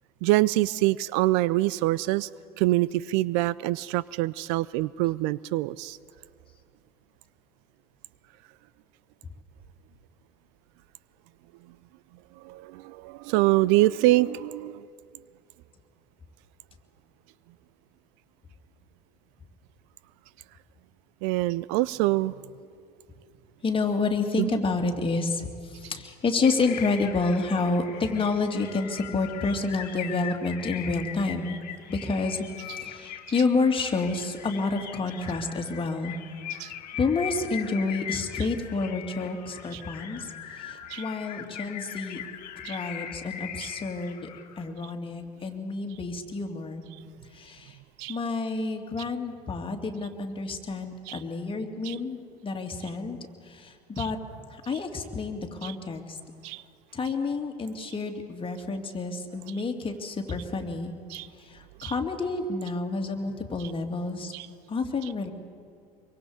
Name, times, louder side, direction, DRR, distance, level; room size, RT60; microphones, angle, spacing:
voice 1, 0.2-2.3 2.6-6.0 12.4-14.8 21.2-22.3 24.4-24.5 36.6-36.7 39.7-39.8 40.9-41.0 42.6-42.8 48.0-48.2 51.1-51.2 51.8-52.0 54.0-54.1 55.6-55.7 56.4-56.6 61.1-61.3 61.8-61.9 64.3-64.5, right 18 dB, 60° right, 20 dB, 0.5 m, -25 dB
voice 2, 23.6-31.6 31.9-32.5 32.8-36.1 37.0-42.2 42.6-44.3 44.6-46.8 47.3-47.8 48.1-53.2 53.5-54.2 54.5-56.2 56.9-60.9 61.5-64.3 64.7-65.3, left 3 dB, 25° left, 3 dB, 2.6 m, -29 dB
sound 1, 26.4-44.6, left 10 dB, 75° left, 1.8 m, -41 dB
24.5 x 23.5 x 5.1 m, 2.3 s
hypercardioid pair, 75°, 21 cm